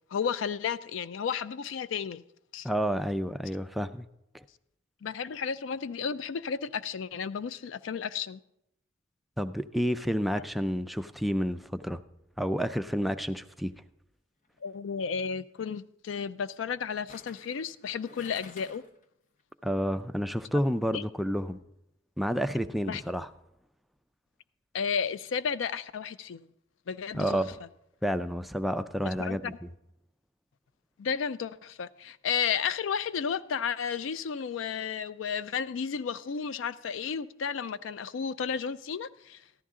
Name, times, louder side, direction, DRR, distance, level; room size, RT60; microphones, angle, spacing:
voice 1, 0.1-2.2 2.5-2.7 5.0-8.4 14.6-18.8 20.8-21.0 22.8-23.0 24.7-26.5 26.9-27.4 29.0-29.4 31.0-39.4, left 6 dB, 75° left, 0.4 m, -33 dB
voice 2, 2.6-4.1 4.3-4.4 9.4-12.0 12.4-13.7 19.6-21.6 22.2-23.3 27.1-27.6 28.0-29.7, equal, ahead, 0.3 m, -30 dB
sound 1, 14.5-14.7 17.1-19.0 19.4-19.5, left 3 dB, 40° left, 0.7 m, -51 dB
14.0 x 11.5 x 3.7 m
head